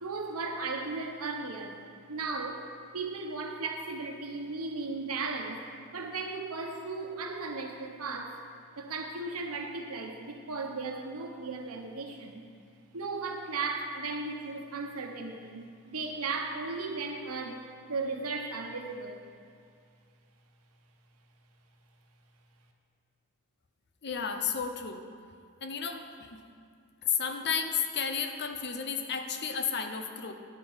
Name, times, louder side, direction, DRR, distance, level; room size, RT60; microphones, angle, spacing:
voice 1, 0.0-1.8 2.1-5.6 5.9-8.4 8.8-12.4 12.9-19.2, right 3 dB, 70° right, 3 dB, 1.1 m, -36 dB
voice 2, 24.0-25.0 25.6-26.4 27.0-30.3, left 6 dB, 50° left, 6 dB, 0.8 m, -32 dB
10.0 x 7.5 x 5.6 m, 2.3 s
head